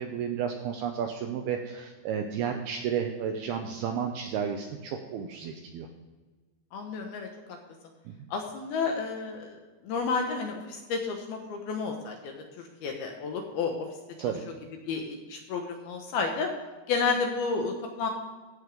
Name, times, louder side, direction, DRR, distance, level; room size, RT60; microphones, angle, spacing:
voice 1, 0.0-5.9 8.1-8.2 14.2-14.4, right 7 dB, 80° right, 4 dB, 2.3 m, -32 dB
voice 2, 6.7-7.6 8.3-13.9 14.9-16.5 16.9-18.1, left 4 dB, 70° left, 3 dB, 2.6 m, -31 dB
15.0 x 6.3 x 5.2 m, 1.3 s
omnidirectional pair, 5.4 m